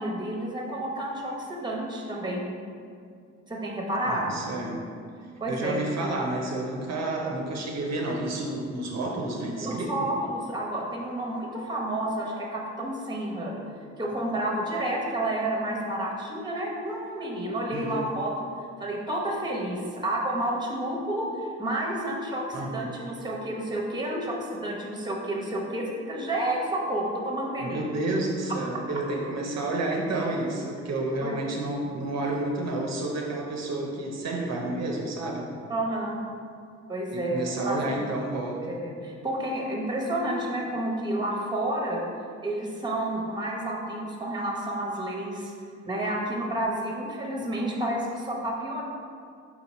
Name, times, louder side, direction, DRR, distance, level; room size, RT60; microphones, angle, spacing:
voice 1, 0.0-2.5 3.5-4.4 5.4-5.8 9.6-13.5 14.0-18.5 18.8-27.8 31.2-31.3 35.7-36.2 36.9-37.4 37.6-38.0 38.7-42.0 42.4-45.5 45.8-48.8, right 1 dB, 15° right, -2 dB, 0.9 m, -30 dB
voice 2, 4.1-4.8 5.4-9.9 17.7-18.1 22.5-22.9 27.6-35.5 37.1-38.8, right 2 dB, 60° right, 0 dB, 0.6 m, -30 dB
4.2 x 2.9 x 4.1 m, 2.3 s
cardioid pair, 90°, 30 cm